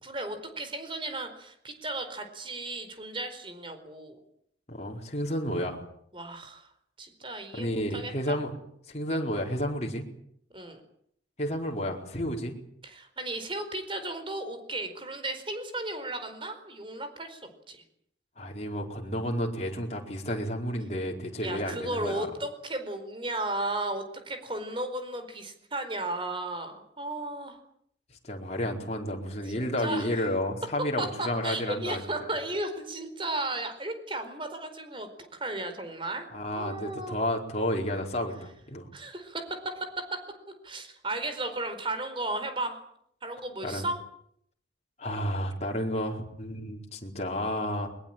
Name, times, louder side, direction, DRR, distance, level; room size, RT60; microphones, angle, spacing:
voice 1, 0.0-4.2 6.1-6.7 7.0-8.4 10.5-10.8 12.8-17.8 21.4-27.6 29.5-30.1 31.0-35.1 35.4-37.2 38.9-39.9 40.6-42.8 43.2-44.0, right 2 dB, 25° right, 8 dB, 4.5 m, -35 dB
voice 2, 4.7-5.8 7.5-8.5 8.9-10.1 11.4-12.5 18.4-22.3 28.2-32.3 36.3-38.9 43.6-43.8 45.0-47.9, equal, 35° left, 1 dB, 4.6 m, -31 dB
22.5 x 21.5 x 9.0 m, 0.69 s
head